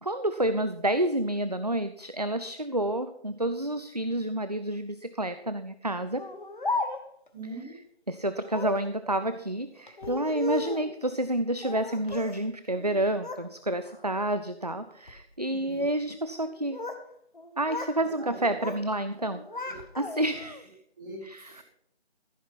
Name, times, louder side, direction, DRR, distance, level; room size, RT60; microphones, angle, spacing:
voice 1, 0.0-6.2 8.1-16.8 17.6-19.7 20.0-20.7 21.2-21.6, right 1 dB, 40° right, 11 dB, 0.5 m, -29 dB
Speech, 6.2-7.3 8.4-8.9 9.9-10.9 11.6-12.4 12.7-13.5 13.8-14.2 14.9-15.2 16.3-17.1 17.3-18.0 18.3-18.9 19.2-20.4, left 3 dB, 45° left, 1.3 m, -36 dB
voice 2, 7.3-7.7 15.5-15.8 18.0-18.7 19.6-19.7 21.0-21.6, right 2 dB, 20° right, -4 dB, 3.8 m, -42 dB
14.5 x 8.0 x 6.0 m, 0.70 s
figure-of-eight pair, 165°, 33 cm